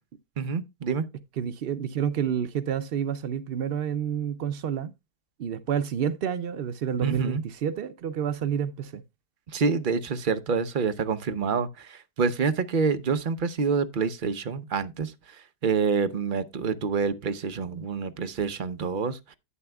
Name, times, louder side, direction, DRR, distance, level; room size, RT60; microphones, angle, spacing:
voice 1, 0.4-1.0 7.0-7.4 9.5-15.1 15.6-19.3, right 5 dB, 45° right, 0.7 m, -27 dB
voice 2, 1.4-4.9 5.4-9.0, right 8 dB, 90° right, 0.5 m, -29 dB
11.0 x 9.0 x 2.3 m
omnidirectional pair, 1.8 m